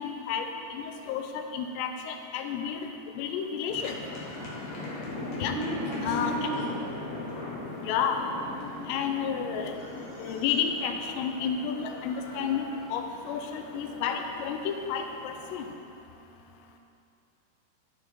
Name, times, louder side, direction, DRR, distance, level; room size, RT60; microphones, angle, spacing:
voice 1, 0.0-4.0 5.4-5.5 6.0-6.5 7.8-8.2 8.9-9.7 10.2-15.7, left 7 dB, 85° left, 5 dB, 2.7 m, -31 dB
sound 1, 3.7-15.7, left 2 dB, 70° left, 3.2 m, -39 dB
voice 2, 5.5-6.7, right 2 dB, 75° right, -7 dB, 1.7 m, -34 dB
12.5 x 4.6 x 4.4 m, 2.5 s
omnidirectional pair, 4.9 m